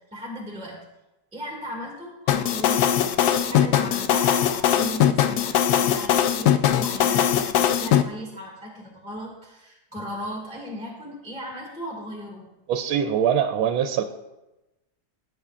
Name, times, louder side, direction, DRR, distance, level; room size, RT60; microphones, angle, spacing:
voice 1, 0.1-0.8 1.3-12.5, equal, 5° right, -4 dB, 1.8 m, -37 dB
sound 1, 2.3-8.0, left 10 dB, 75° left, 0.8 m, -20 dB
voice 2, 12.7-14.0, right 8 dB, 80° right, 7 dB, 1.4 m, -23 dB
17.5 x 8.2 x 2.4 m, 1.0 s
omnidirectional pair, 2.2 m